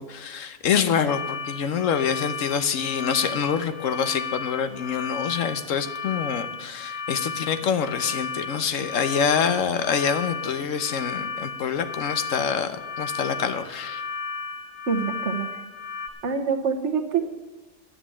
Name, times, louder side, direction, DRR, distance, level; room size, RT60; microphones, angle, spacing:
voice 1, 0.0-14.0, left 7 dB, 90° left, 10 dB, 1.2 m, -26 dB
sound 1, 1.1-16.1, left 5 dB, 45° left, 1.1 m, -34 dB
voice 2, 14.9-15.5 16.2-17.2, right 6 dB, 65° right, 5 dB, 1.4 m, -25 dB
10.0 x 7.6 x 8.4 m, 1.1 s
omnidirectional pair, 1.3 m